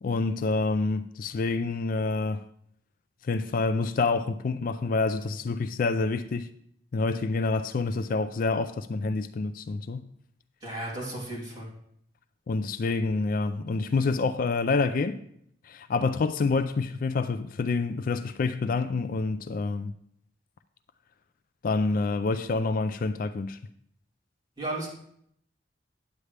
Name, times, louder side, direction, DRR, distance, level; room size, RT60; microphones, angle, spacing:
voice 1, 0.0-2.4 3.2-6.5 6.9-10.1 12.5-15.2 15.7-19.9 21.6-23.6, left 3 dB, 50° left, 0.4 m, -27 dB
voice 2, 10.6-11.7 24.6-24.9, right 1 dB, 25° right, 3.2 m, -34 dB
9.4 x 8.4 x 3.3 m
head